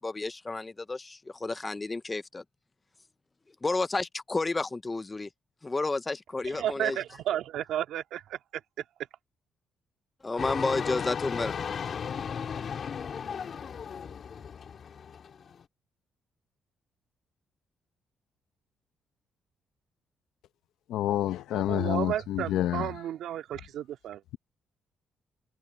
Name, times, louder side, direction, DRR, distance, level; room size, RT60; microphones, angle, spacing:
voice 1, 0.0-2.4 3.6-5.3 5.6-7.0 10.2-11.6, left 3 dB, 20° left, 0.9 m, -31 dB
voice 2, 6.6-8.4 21.5-24.2, right 11 dB, 80° right, 2.5 m, -32 dB
sound 1, 10.4-15.6, left 7 dB, 50° left, 3.0 m, -35 dB
voice 3, 20.9-22.9, left 12 dB, 85° left, 1.0 m, -28 dB
cardioid pair, 90°, 0 cm